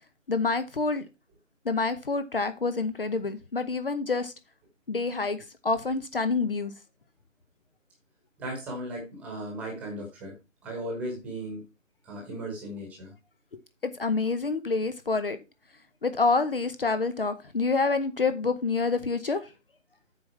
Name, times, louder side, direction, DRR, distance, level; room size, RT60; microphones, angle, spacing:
voice 1, 0.3-1.0 1.6-4.3 4.9-6.7 13.8-15.4 16.0-19.4, left 4 dB, 45° left, 1.0 m, -27 dB
voice 2, 8.4-10.3 10.6-11.6 12.0-13.1, right 1 dB, 5° right, 1.4 m, -36 dB
8.7 x 5.7 x 4.5 m
figure-of-eight pair, 150°, 38 cm